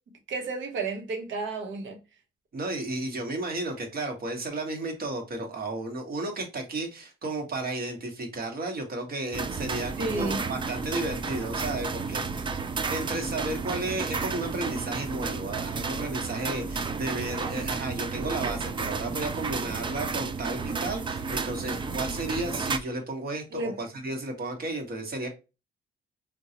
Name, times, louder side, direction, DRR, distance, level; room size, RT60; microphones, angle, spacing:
voice 1, 0.3-2.0 10.0-10.4 23.5-23.7, right 3 dB, 70° right, 1.0 m, -31 dB
voice 2, 2.5-12.6 12.9-25.3, right 2 dB, 50° right, 1.1 m, -33 dB
sound 1, 9.3-22.8, right 4 dB, 25° right, 0.4 m, -32 dB
3.7 x 2.3 x 2.8 m
cardioid pair, 90°, 20 cm